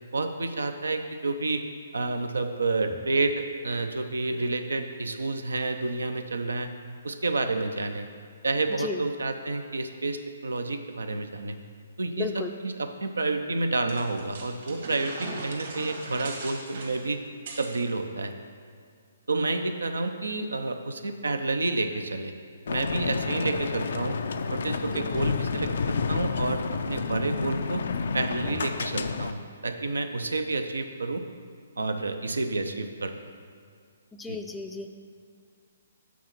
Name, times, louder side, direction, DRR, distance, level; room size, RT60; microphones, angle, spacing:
voice 1, 0.1-1.6 1.9-6.7 7.0-8.1 8.4-11.6 12.0-17.2 17.6-18.3 19.3-22.3 22.7-24.2 24.5-27.8 28.1-31.2 31.8-33.2 34.3-34.4, right 3 dB, 85° right, 7 dB, 0.6 m, -29 dB
voice 2, 12.2-12.5 24.9-25.2 28.4-28.5 34.1-35.0, left 5 dB, 10° left, 5 dB, 0.4 m, -35 dB
sound 1, 13.9-17.8, right 3 dB, 60° right, 1.8 m, -39 dB
sound 2, 22.7-29.3, left 5 dB, 65° left, 0.4 m, -30 dB
8.4 x 4.0 x 6.0 m, 2.2 s
hypercardioid pair, 140°, 0 cm